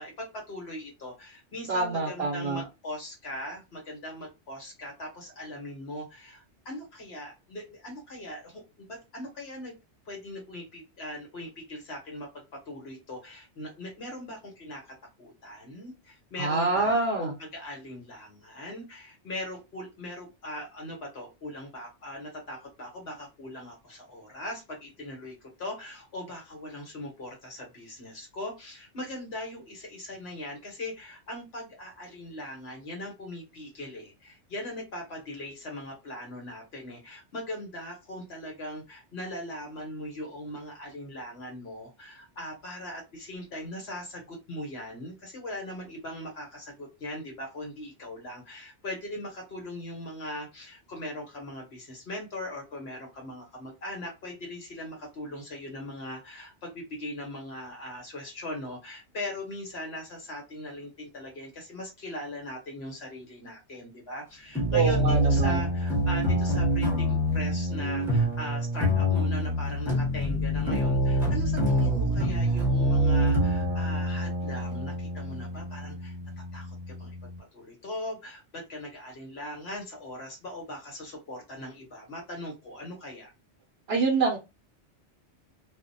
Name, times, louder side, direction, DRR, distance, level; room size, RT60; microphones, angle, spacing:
voice 1, 0.0-9.7 10.0-83.3, left 1 dB, 65° left, 0 dB, 1.1 m, -40 dB
voice 2, 1.7-2.6 16.4-17.3 64.7-65.6 83.9-84.4, right 4 dB, 65° right, 2 dB, 0.8 m, -26 dB
sound 1, 64.6-77.4, equal, ahead, 0.9 m, -26 dB
2.4 x 2.0 x 2.5 m, 0.25 s
omnidirectional pair, 1.2 m